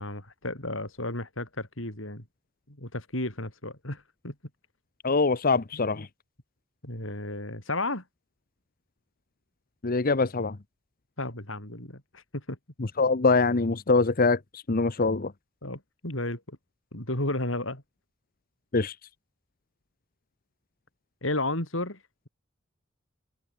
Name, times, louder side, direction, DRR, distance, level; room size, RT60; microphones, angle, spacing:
voice 1, 0.0-2.2 2.7-4.3 6.0-6.1 6.8-8.0 11.2-12.6 15.6-16.4 16.9-17.8 21.2-22.0, left 2 dB, 75° left, 7.9 m, -33 dB
voice 2, 5.0-6.1 9.8-10.6 13.0-15.3 18.7-18.9, left 3 dB, 45° left, 0.9 m, -24 dB
head